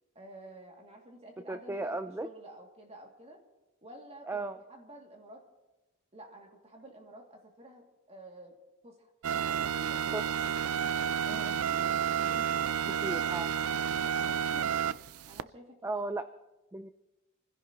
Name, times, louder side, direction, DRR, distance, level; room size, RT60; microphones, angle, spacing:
voice 1, 0.1-3.4 3.8-4.3 4.7-5.4 6.1-8.6 8.8-9.1 9.4-10.3 13.9-15.0 15.3-15.9, right 1 dB, 30° right, 1 dB, 2.6 m, -51 dB
voice 2, 1.5-2.3 4.3-4.6 10.1-10.2 11.3-11.5 13.0-13.5 15.8-16.3 16.7-16.9, right 2 dB, 10° right, 10 dB, 0.4 m, -35 dB
sound 1, 9.2-15.4, right 8 dB, 75° right, 0.5 m, -31 dB
27.5 x 15.5 x 3.0 m, 1.0 s
head